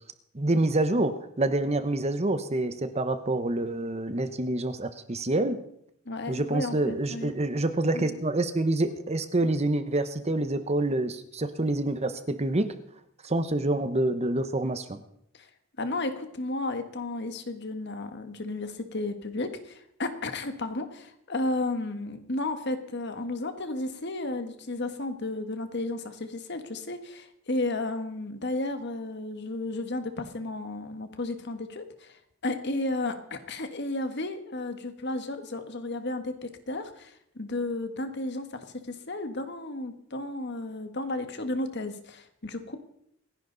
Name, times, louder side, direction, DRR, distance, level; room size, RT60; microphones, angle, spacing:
voice 1, 0.3-5.6 6.3-12.7 13.2-15.0, right 2 dB, 30° right, 10 dB, 1.0 m, -27 dB
voice 2, 6.0-7.3 7.9-8.2 15.3-15.5 15.8-42.8, left 2 dB, 55° left, 8 dB, 1.6 m, -33 dB
27.0 x 10.5 x 4.0 m, 0.72 s
head